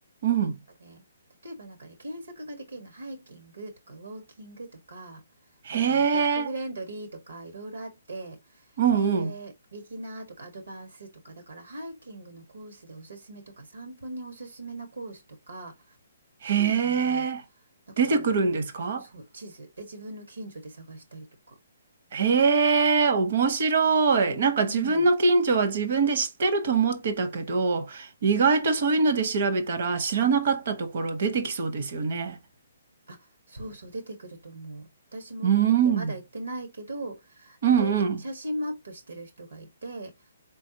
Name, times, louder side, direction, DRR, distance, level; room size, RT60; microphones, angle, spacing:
voice 1, 0.2-0.6 5.7-6.5 8.8-9.3 16.4-17.4 18.0-19.0 22.1-32.4 35.4-36.1 37.6-38.2, right 5 dB, 55° right, 0.9 m, -23 dB
voice 2, 1.4-5.2 5.7-8.4 8.9-15.8 16.4-17.2 17.9-18.3 19.0-21.5 24.6-25.1 33.1-33.2 33.5-40.1, right 1 dB, 85° right, 1.4 m, -40 dB
3.9 x 3.4 x 2.7 m
hypercardioid pair, 145°, 0 cm